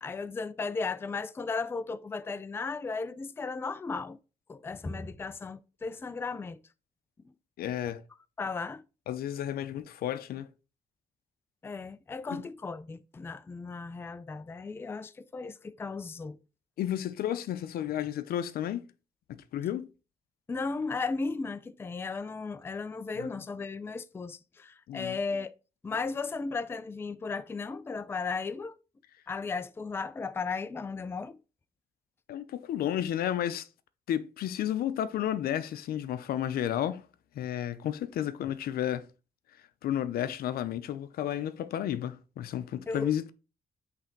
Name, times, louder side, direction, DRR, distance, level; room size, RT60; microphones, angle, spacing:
voice 1, 0.0-4.2 4.5-6.6 8.4-8.8 11.6-16.4 20.5-25.5 25.8-28.8 29.3-31.4 42.9-43.1, left 4 dB, 15° left, 0.3 m, -35 dB
voice 2, 7.6-8.0 9.1-10.5 12.3-12.4 16.8-18.9 19.3-19.9 23.2-23.3 24.9-25.2 32.3-33.7 34.1-37.0 37.3-39.1 39.8-43.3, left 11 dB, 80° left, 0.6 m, -32 dB
5.7 x 3.3 x 5.2 m
cardioid pair, 140°, 15 cm